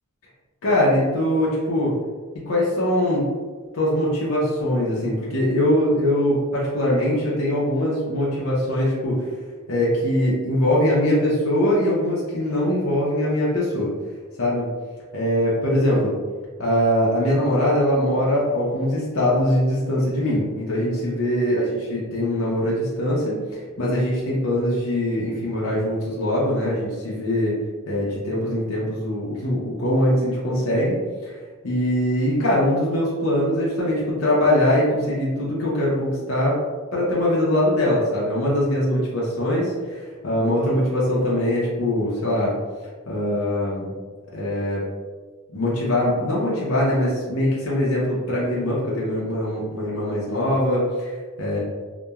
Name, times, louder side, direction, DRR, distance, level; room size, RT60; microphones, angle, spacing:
voice 1, 0.6-2.0 2.3-3.3 3.7-9.2 9.7-13.9 14.4-14.7 15.1-16.1 16.6-27.5 27.9-31.0 31.2-31.3 31.6-36.6 36.9-42.5 43.1-43.9 44.3-44.8 45.5-51.6, left 1 dB, 70° left, -6 dB, 0.6 m, -22 dB
2.8 x 2.2 x 2.3 m, 1.4 s
head